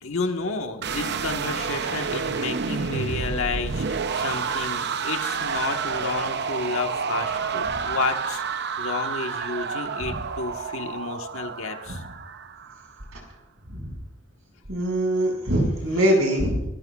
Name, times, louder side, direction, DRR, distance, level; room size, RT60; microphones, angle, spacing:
voice 1, 0.0-8.4 8.8-12.0 15.4-15.5 15.9-16.0, left 4 dB, 65° left, 4 dB, 1.4 m, -31 dB
sound 1, 0.8-12.9, right 5 dB, 50° right, 0.7 m, -29 dB
voice 2, 14.7-16.7, equal, 70° right, 1 dB, 5.5 m, -23 dB
30.0 x 14.0 x 2.4 m, 0.95 s
head